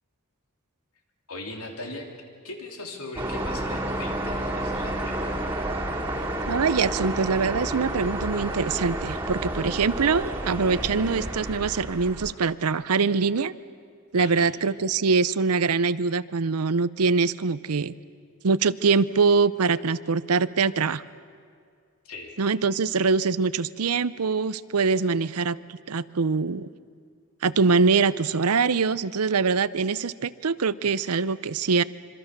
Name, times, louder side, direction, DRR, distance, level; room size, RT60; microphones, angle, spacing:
voice 1, 1.3-2.1 2.4-5.4 14.2-14.5 22.1-22.4, left 2 dB, 80° left, 2 dB, 3.5 m, -39 dB
sound 1, 3.2-12.3, right 1 dB, 10° right, 2.5 m, -30 dB
voice 2, 6.5-13.5 14.1-17.9 18.4-21.0 22.4-26.7 27.4-31.8, right 4 dB, 90° right, 17 dB, 0.7 m, -23 dB
26.0 x 25.0 x 6.8 m, 2.2 s
head